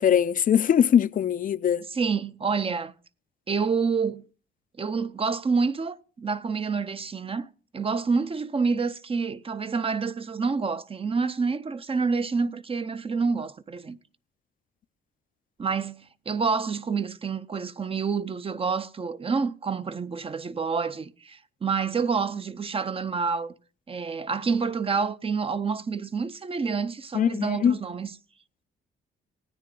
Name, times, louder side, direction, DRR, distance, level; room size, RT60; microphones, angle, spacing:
voice 1, 0.0-1.8 27.1-27.8, left 9 dB, 45° left, 0.5 m, -21 dB
voice 2, 1.9-2.9 3.5-4.3 4.8-7.5 7.7-14.0 15.6-23.5 23.9-28.1, right 5 dB, 30° right, 0.6 m, -28 dB
17.0 x 9.5 x 3.7 m
cardioid pair, 90°, 20 cm